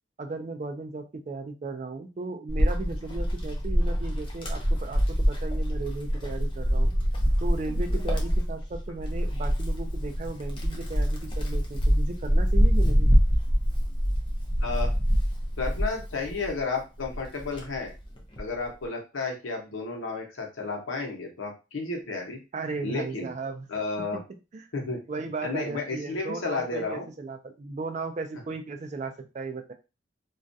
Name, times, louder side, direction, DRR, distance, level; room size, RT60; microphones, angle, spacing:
voice 1, 0.2-6.9 7.4-13.2 22.5-23.7 24.0-24.2 24.5-24.6 25.1-29.7, right 3 dB, 35° right, 6 dB, 0.3 m, -36 dB
Wind, 2.5-16.6 17.0-18.5, equal, 25° left, 0.5 m, -25 dB
voice 2, 14.6-14.9 15.6-17.9 18.4-22.4 22.8-23.3 23.7-24.2 24.7-25.1 25.4-27.1, left 3 dB, 85° left, 1 dB, 0.8 m, -32 dB
2.3 x 2.1 x 2.6 m, 0.29 s
head